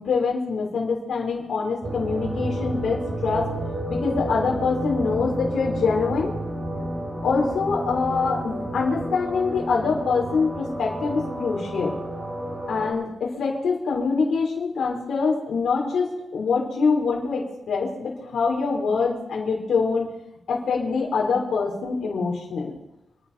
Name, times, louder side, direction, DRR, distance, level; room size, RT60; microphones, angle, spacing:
voice 1, 0.0-3.5 3.9-6.3 7.2-12.0 12.7-20.1 20.5-22.8, left 4 dB, 70° left, -2 dB, 4.0 m, -24 dB
sound 1, 1.8-12.9, right 1 dB, 30° right, 4.4 m, -31 dB
27.0 x 10.0 x 4.3 m, 0.89 s
cardioid pair, 110°, 0 cm